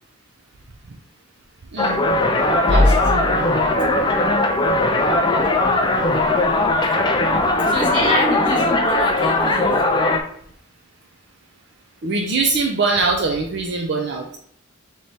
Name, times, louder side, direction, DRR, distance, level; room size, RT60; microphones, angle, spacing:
sound 1, 1.8-10.2, left 2 dB, 20° left, 0.4 m, -18 dB
voice 1, 2.7-3.5 5.7-5.9 7.3-7.5 12.0-14.4, right 3 dB, 55° right, 1 dB, 0.5 m, -23 dB
voice 2, 7.7-9.8, left 1 dB, 25° right, -4 dB, 1.4 m, -25 dB
3.3 x 3.1 x 4.1 m, 0.63 s
head